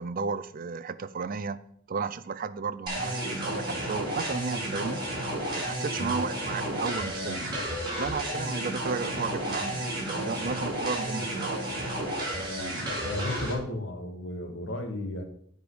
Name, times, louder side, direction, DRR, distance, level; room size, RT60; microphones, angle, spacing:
voice 1, 0.0-1.6 1.9-5.0 5.6-7.4 8.0-11.6, right 5 dB, 45° right, 14 dB, 0.5 m, -33 dB
sound 1, 2.9-13.5, right 1 dB, 25° right, 3.6 m, -32 dB
voice 2, 13.0-15.2, left 2 dB, 75° left, 4 dB, 1.7 m, -34 dB
8.1 x 5.2 x 6.6 m, 0.62 s
head